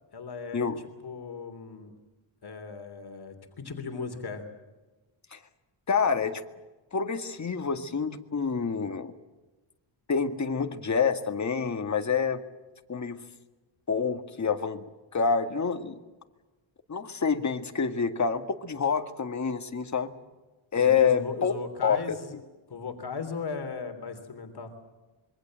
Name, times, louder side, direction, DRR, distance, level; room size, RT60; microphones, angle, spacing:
voice 1, 0.1-0.7 1.0-1.9 2.4-4.4 20.7-22.4 22.7-24.7, left 5 dB, 50° left, 6 dB, 3.3 m, -37 dB
voice 2, 5.9-6.4 6.9-9.1 10.1-12.4 12.9-13.2 13.9-14.8 15.1-16.0 16.9-20.2 20.7-21.5 21.8-22.0, left 6 dB, 35° left, 7 dB, 2.0 m, -27 dB
26.5 x 23.5 x 7.6 m, 1.2 s
wide cardioid pair, 135°, 48 cm